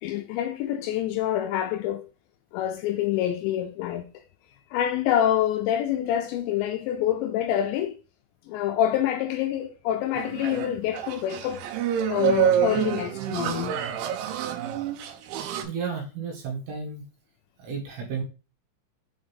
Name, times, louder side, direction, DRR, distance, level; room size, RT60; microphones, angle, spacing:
voice 1, 0.0-2.1 2.5-4.1 4.7-8.0 8.5-11.6 12.1-13.8, left 11 dB, 85° left, 2.5 m, -26 dB
sound 1, 10.1-15.6, right 9 dB, 80° right, 3.0 m, -27 dB
voice 2, 15.3-17.1 17.6-18.2, right 5 dB, 65° right, 3.3 m, -33 dB
7.1 x 3.8 x 3.5 m
omnidirectional pair, 5.7 m